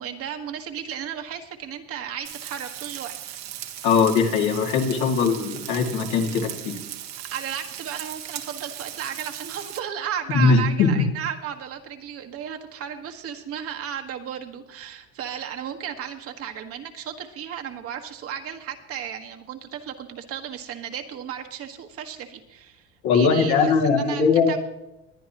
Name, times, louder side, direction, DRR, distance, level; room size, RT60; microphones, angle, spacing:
voice 1, 0.0-3.1 7.3-24.6, right 9 dB, 50° right, 5 dB, 1.5 m, -34 dB
Frying (food), 2.2-9.8, right 12 dB, 70° right, 1.5 m, -38 dB
voice 2, 3.8-6.8 10.3-11.0 23.0-24.5, left 5 dB, 70° left, 1 dB, 2.4 m, -20 dB
21.0 x 10.0 x 3.0 m, 0.90 s
supercardioid pair, 110°, 29 cm